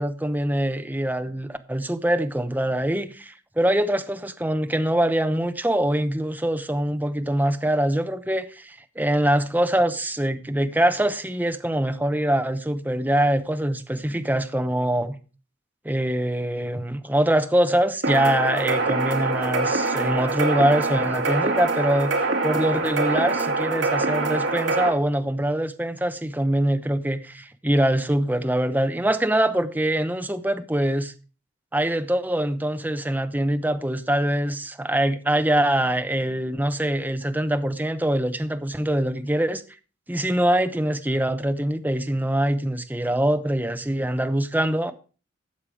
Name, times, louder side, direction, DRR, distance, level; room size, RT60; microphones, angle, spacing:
voice 1, 0.0-15.1 15.8-31.1 31.7-39.6 40.1-44.9, right 1 dB, 10° right, 0.8 m, -24 dB
sound 1, 18.0-24.9, right 3 dB, 75° right, 2.2 m, -24 dB
13.0 x 7.4 x 4.9 m
head